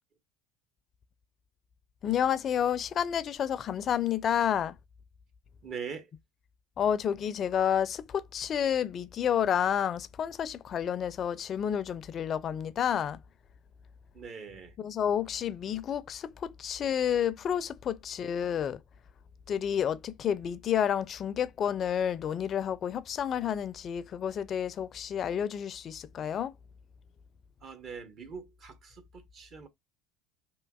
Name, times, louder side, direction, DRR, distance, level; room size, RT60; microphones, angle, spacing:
voice 1, 2.0-4.8 6.8-13.2 14.8-18.8 19.5-26.5, left 9 dB, 40° left, 0.4 m, -30 dB
voice 2, 5.6-6.1 14.1-14.7 27.6-29.7, right 6 dB, 50° right, 0.8 m, -42 dB
3.5 x 2.8 x 2.2 m
hypercardioid pair, 75°, 0 cm